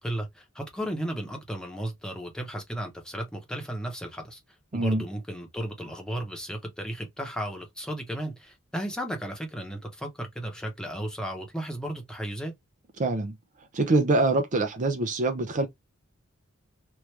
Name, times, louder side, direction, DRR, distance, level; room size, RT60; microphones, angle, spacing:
voice 1, 0.0-4.4 4.7-12.5, right 1 dB, 5° left, 0.8 m, -34 dB
voice 2, 4.7-5.0 13.0-13.3 13.7-15.7, right 2 dB, 35° right, 0.5 m, -24 dB
3.0 x 2.4 x 3.1 m
head